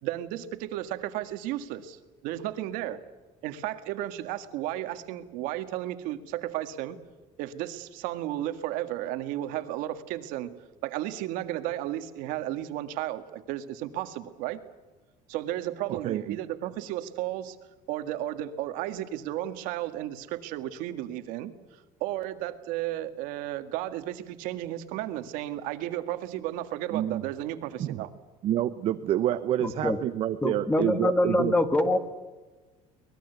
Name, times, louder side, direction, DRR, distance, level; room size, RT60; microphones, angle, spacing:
voice 1, 0.0-3.0 3.4-7.0 7.4-10.5 10.8-14.6 15.3-17.6 17.9-21.5 22.0-28.1, right 13 dB, 80° right, 10 dB, 1.9 m, -33 dB
voice 2, 15.9-16.4 26.9-27.2 27.8-28.0 28.4-31.5, right 12 dB, 45° right, 10 dB, 0.9 m, -28 dB
voice 3, 29.6-30.0 30.4-32.0, left 1 dB, 10° left, 10 dB, 1.5 m, -24 dB
24.0 x 20.5 x 8.1 m, 1.2 s
cardioid pair, 175°, 14 cm